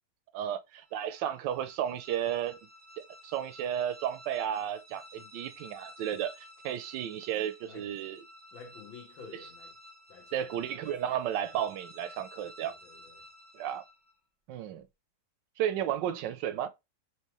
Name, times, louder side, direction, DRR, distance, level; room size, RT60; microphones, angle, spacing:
voice 1, 0.3-2.6 3.0-8.2 10.3-12.7 13.5-13.8 14.5-14.8 15.6-16.7, right 10 dB, 75° right, 1.1 m, -33 dB
sound 1, 0.8-14.2, equal, 20° right, 0.7 m, -53 dB
voice 2, 5.2-5.6 7.6-7.9 8.5-9.8 10.1-11.1 12.6-13.3, left 6 dB, 85° left, 1.9 m, -52 dB
4.6 x 3.0 x 3.0 m
omnidirectional pair, 2.1 m